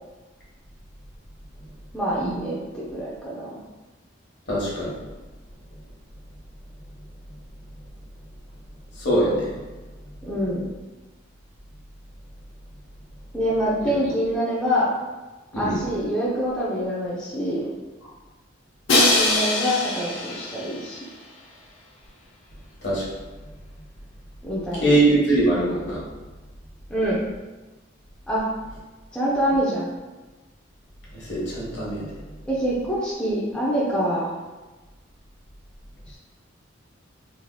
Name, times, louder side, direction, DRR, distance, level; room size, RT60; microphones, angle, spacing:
voice 1, 1.9-3.6 10.3-10.7 13.3-14.9 15.5-17.6 18.9-21.0 24.4-24.9 26.9-27.2 28.3-28.5 29.1-29.9 32.5-34.3 36.1-36.2, equal, 5° left, -8 dB, 0.4 m, -25 dB
voice 2, 4.5-4.9 9.0-9.5 13.8-13.9 15.5-15.8 22.8-23.0 24.8-26.0 31.1-32.1, right 1 dB, 60° left, -6 dB, 1.1 m, -22 dB
Crash cymbal, 18.9-20.9, left 2 dB, 80° left, 0.7 m, -22 dB
3.2 x 2.7 x 2.2 m, 1.2 s
head